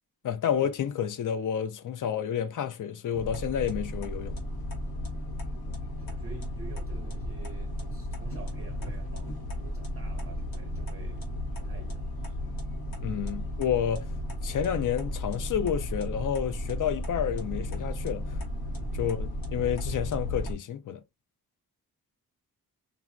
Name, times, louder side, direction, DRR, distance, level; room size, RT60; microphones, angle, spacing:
voice 1, 0.2-4.3 13.0-14.1 14.4-18.4 18.9-21.0, left 9 dB, 55° left, 0.4 m, -30 dB
sound 1, 3.1-20.5, left 1 dB, 70° left, 1.0 m, -34 dB
voice 2, 4.8-5.1 6.0-11.3 11.6-12.4 18.8-19.1, right 3 dB, 40° right, 0.5 m, -49 dB
3.5 x 2.0 x 2.4 m
wide cardioid pair, 165°, 38 cm